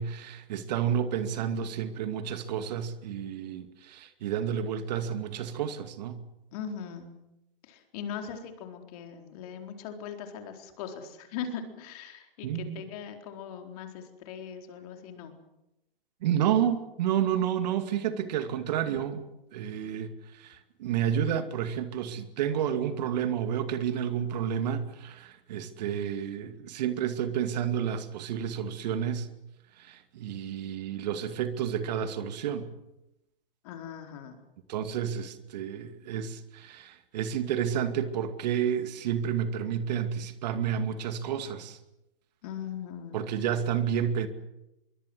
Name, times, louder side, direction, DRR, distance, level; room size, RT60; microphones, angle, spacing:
voice 1, 0.0-6.2 12.4-12.8 16.2-19.3 19.5-29.3 29.8-32.7 34.7-41.8 43.1-44.3, right 9 dB, 45° right, 2.4 m, -30 dB
voice 2, 6.5-7.1 7.6-15.3 33.6-34.3 42.4-43.2, left 7 dB, 40° left, 4.3 m, -40 dB
25.0 x 23.5 x 8.0 m
hypercardioid pair, 135°, 29 cm